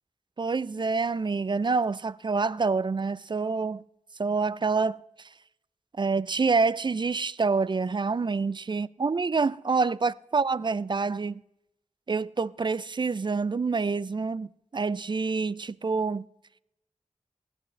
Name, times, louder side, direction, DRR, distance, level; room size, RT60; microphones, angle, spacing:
voice 1, 0.4-3.8 4.2-5.0 6.0-11.4 12.1-14.5 14.7-16.2, right 4 dB, 40° right, 0.4 m, -27 dB
20.5 x 8.8 x 3.2 m
cardioid pair, 50°, 12 cm